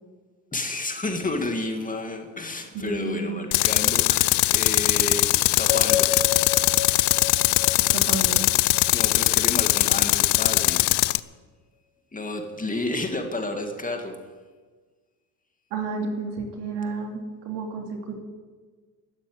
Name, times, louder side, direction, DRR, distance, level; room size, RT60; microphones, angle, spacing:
voice 1, 0.5-6.1 8.9-10.9 12.1-14.2, left 2 dB, 20° left, 4 dB, 2.3 m, -31 dB
voice 2, 2.7-3.6 7.8-8.4 15.7-18.2, right 4 dB, 75° right, 2 dB, 2.9 m, -31 dB
Tools, 3.5-11.2, left 21 dB, 75° left, 0.6 m, -21 dB
sound 1, 5.7-9.8, left 8 dB, 55° left, 2.4 m, -31 dB
13.5 x 8.9 x 9.4 m, 1.4 s
cardioid pair, 95°, 42 cm